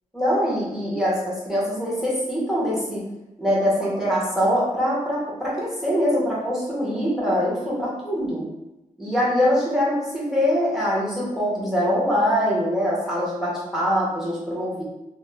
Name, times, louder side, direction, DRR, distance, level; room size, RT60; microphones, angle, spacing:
voice 1, 0.1-3.0 3.4-8.4 9.0-14.8, equal, 5° right, -7 dB, 0.8 m, -23 dB
2.4 x 2.1 x 3.2 m, 0.96 s
wide cardioid pair, 165°, 14 cm